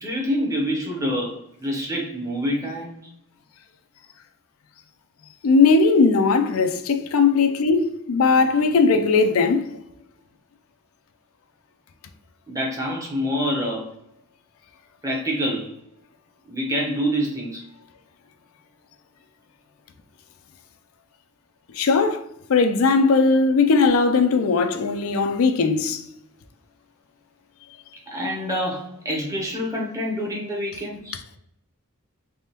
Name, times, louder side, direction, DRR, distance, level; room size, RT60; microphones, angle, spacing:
voice 1, 0.0-2.9 8.6-8.7 12.5-13.9 15.0-15.8 16.5-17.6 23.4-23.9 28.1-31.2, equal, 15° right, 0.8 m, -27 dB
voice 2, 5.4-9.7 21.8-22.2 22.5-26.0 31.1-31.2, left 4 dB, 75° left, 0.4 m, -18 dB
3.5 x 3.3 x 2.8 m
head